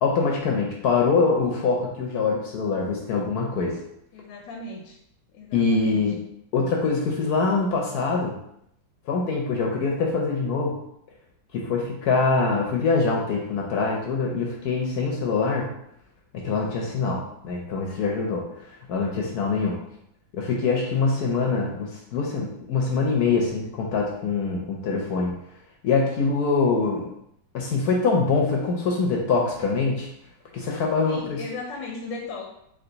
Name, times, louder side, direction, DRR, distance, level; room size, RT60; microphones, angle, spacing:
voice 1, 0.0-3.8 5.5-6.2 6.5-8.4 9.1-10.8 11.5-15.7 16.3-19.8 20.3-25.3 25.8-27.1 27.5-30.1 30.5-31.4, left 4 dB, 65° left, -1 dB, 1.1 m, -24 dB
voice 2, 4.1-5.0 5.3-6.0 31.1-32.5, left 3 dB, 85° left, -1 dB, 1.4 m, -36 dB
3.5 x 3.4 x 3.9 m, 0.75 s
omnidirectional pair, 1.9 m